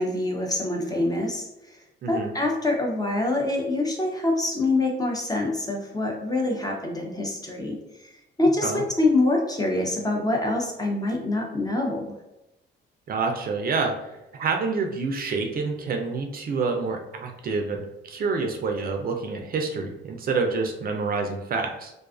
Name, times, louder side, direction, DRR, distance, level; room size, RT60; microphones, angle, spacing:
voice 1, 0.0-1.8 2.1-12.2, left 2 dB, 20° left, 1 dB, 0.5 m, -25 dB
voice 2, 2.0-2.3 8.6-8.8 13.1-13.9 14.3-21.9, right 4 dB, 50° right, 3 dB, 0.4 m, -27 dB
2.4 x 2.3 x 2.3 m, 0.93 s
cardioid pair, 90°, 20 cm